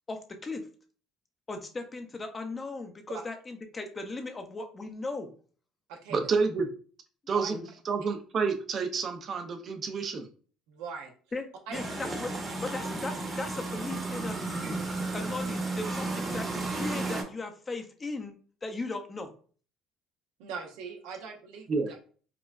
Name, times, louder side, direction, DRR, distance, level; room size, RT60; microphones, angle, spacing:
voice 1, 0.1-0.7 1.5-5.3 7.5-7.7 11.3-11.4 11.7-12.3 12.6-14.4 14.8-18.4 18.6-19.3, left 3 dB, 30° left, 5 dB, 0.6 m, -37 dB
voice 2, 6.1-6.7 7.3-7.6 7.8-10.3 21.7-21.9, right 5 dB, 45° right, 6 dB, 0.6 m, -29 dB
voice 3, 10.7-11.1 11.7-11.8 20.4-21.7, right 5 dB, 80° right, 3 dB, 0.7 m, -40 dB
sound 1, 11.7-17.2, right 2 dB, 30° right, 1.1 m, -33 dB
4.8 x 2.2 x 2.4 m, 0.42 s
supercardioid pair, 80°, 0 cm